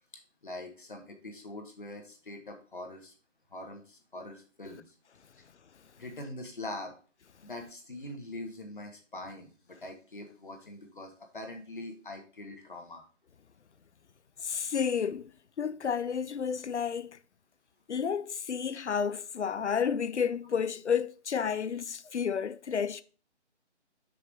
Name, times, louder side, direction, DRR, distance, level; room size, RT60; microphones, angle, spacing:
voice 1, 0.4-3.1 3.5-5.0 6.0-7.0 7.4-13.0, left 2 dB, 45° left, 1.7 m, -43 dB
voice 2, 14.4-15.3 15.6-17.2 17.9-23.0, left 7 dB, 70° left, 0.6 m, -31 dB
5.8 x 5.1 x 5.3 m
figure-of-eight pair, 180°, 35 cm